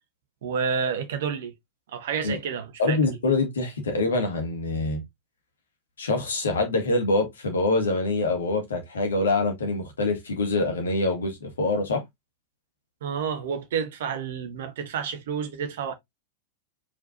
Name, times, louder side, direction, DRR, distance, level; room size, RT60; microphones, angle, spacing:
voice 1, 0.4-1.5 1.9-3.0 13.0-15.9, right 6 dB, 55° right, 1.2 m, -29 dB
voice 2, 2.8-5.0 6.0-12.0, left 2 dB, 70° left, 1.8 m, -25 dB
4.9 x 4.4 x 2.4 m
figure-of-eight pair, 90°, 0 cm